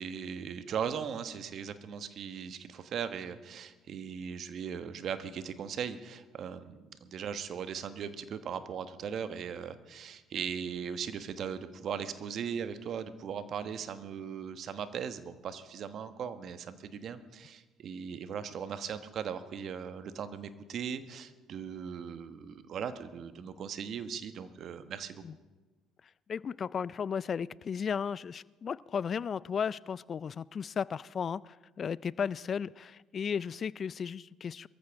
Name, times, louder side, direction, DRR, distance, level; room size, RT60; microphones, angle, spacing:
voice 1, 0.0-25.2, right 7 dB, 55° right, 10 dB, 1.2 m, -38 dB
voice 2, 26.3-34.7, left 7 dB, 45° left, 21 dB, 0.4 m, -35 dB
23.0 x 14.5 x 3.6 m, 1.2 s
hypercardioid pair, 60°, 0 cm